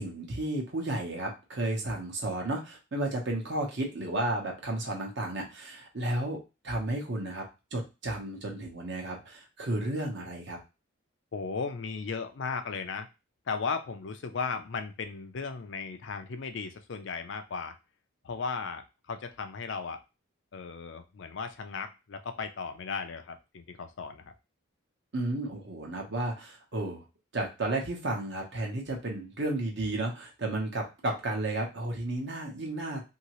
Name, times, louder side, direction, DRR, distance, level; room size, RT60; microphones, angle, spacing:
voice 1, 0.0-6.4 6.6-7.4 7.7-10.6 25.1-27.0 27.3-33.0, right 1 dB, 55° right, 1 dB, 0.9 m, -33 dB
voice 2, 11.3-13.1 13.5-17.8 18.2-20.0 20.5-24.3, left 5 dB, 55° left, 7 dB, 0.4 m, -36 dB
2.8 x 2.8 x 3.0 m, 0.27 s
head